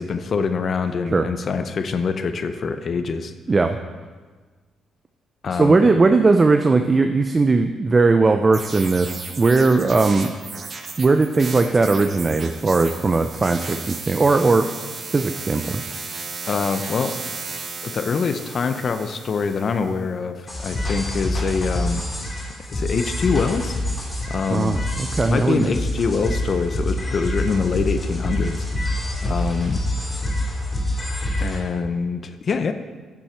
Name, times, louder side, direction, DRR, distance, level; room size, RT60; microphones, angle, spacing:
voice 1, 0.0-3.3 5.4-5.8 16.5-17.2 17.8-22.0 22.7-23.8 24.3-24.8 25.2-28.7 29.2-29.8 31.4-32.7, left 5 dB, 50° left, 9 dB, 0.6 m, -24 dB
voice 2, 3.5-3.8 5.5-10.3 11.0-14.7 15.1-15.8 24.5-25.7, right 3 dB, 30° right, 7 dB, 0.5 m, -18 dB
sound 1, 8.5-19.9, right 4 dB, 45° right, 1.0 m, -35 dB
sound 2, 20.5-31.6, left 1 dB, 25° left, 2.9 m, -26 dB
10.0 x 7.2 x 4.5 m, 1.4 s
cardioid pair, 90°, 0 cm